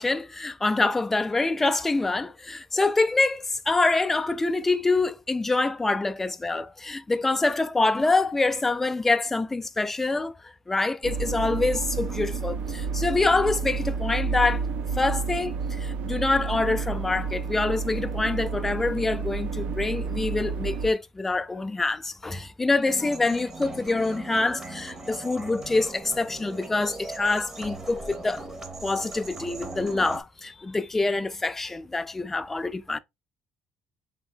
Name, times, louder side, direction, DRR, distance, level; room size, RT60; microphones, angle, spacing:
voice 1, 0.0-14.6 15.0-28.4 28.8-33.0, left 3 dB, 15° left, 0.3 m, -26 dB
sound 1, 11.0-20.9, right 5 dB, 75° right, 0.4 m, -30 dB
sound 2, 22.8-30.2, right 2 dB, 20° right, 0.8 m, -39 dB
3.9 x 3.6 x 2.6 m
cardioid pair, 135°, 2 cm